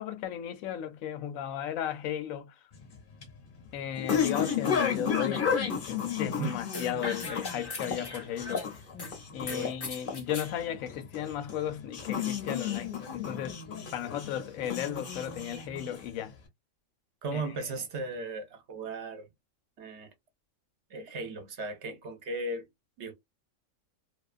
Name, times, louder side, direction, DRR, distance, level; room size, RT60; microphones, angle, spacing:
voice 1, 0.0-2.5 3.7-5.5 5.9-8.6 9.3-13.6 13.9-16.3 17.3-17.4, left 10 dB, 90° left, 1.0 m, -35 dB
sound 1, 2.7-16.3, left 7 dB, 45° left, 0.9 m, -33 dB
sound 2, 6.7-9.1 9.5-10.5, left 3 dB, 30° left, 0.5 m, -40 dB
voice 2, 9.4-9.8 17.2-19.3 19.8-20.1 20.9-22.7 23.0-23.1, right 2 dB, 60° right, 0.9 m, -36 dB
2.5 x 2.3 x 2.4 m
omnidirectional pair, 1.4 m